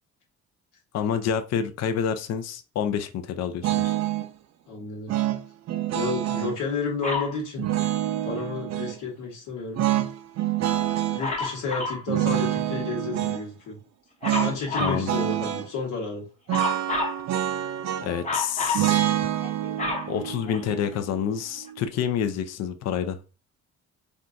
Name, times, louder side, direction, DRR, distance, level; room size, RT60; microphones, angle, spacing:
voice 1, 0.9-4.0 14.8-15.1 18.0-19.3 20.1-23.2, left 8 dB, 60° left, 9 dB, 0.5 m, -28 dB
sound 1, 3.6-4.3 5.1-6.6 7.6-9.0 9.8-11.2 12.1-13.4 14.2-14.6 14.9-15.7 16.5-18.2 18.7-21.8, right 12 dB, 60° right, 0.4 m, -27 dB
voice 2, 4.7-5.1 5.9-7.7 8.2-9.8 11.1-13.8 14.4-16.2, left 4 dB, 85° left, -1 dB, 1.3 m, -31 dB
Dog, 7.0-7.4 11.2-12.1 14.2-15.0 16.5-17.2 18.2-18.9 19.4-20.9 21.7-21.8, left 3 dB, 25° left, 0.9 m, -29 dB
3.6 x 2.3 x 2.6 m, 0.31 s
cardioid pair, 90°, 30 cm